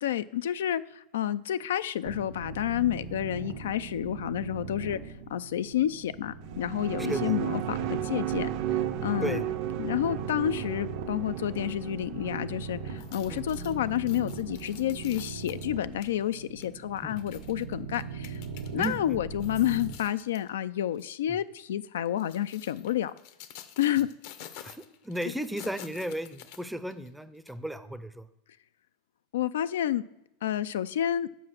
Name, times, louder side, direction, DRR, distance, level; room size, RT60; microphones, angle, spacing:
voice 1, 0.0-5.0 5.3-8.5 9.0-9.4 9.8-18.4 18.7-23.1 23.8-24.1 29.3-30.0 30.4-31.3, left 11 dB, 85° left, 14 dB, 0.3 m, -30 dB
sound 1, 2.1-19.9, right 5 dB, 85° right, 1.2 m, -40 dB
sound 2, 6.4-15.1, right 13 dB, 55° right, 0.6 m, -35 dB
sound 3, 12.9-18.9 19.3-20.5 20.9-21.1 22.0-27.1 27.5-27.6, left 10 dB, 60° left, 0.8 m, -49 dB
voice 2, 25.0-28.2, right 1 dB, 5° right, 12 dB, 0.5 m, -34 dB
7.7 x 4.8 x 6.4 m, 0.91 s
supercardioid pair, 130°, 0 cm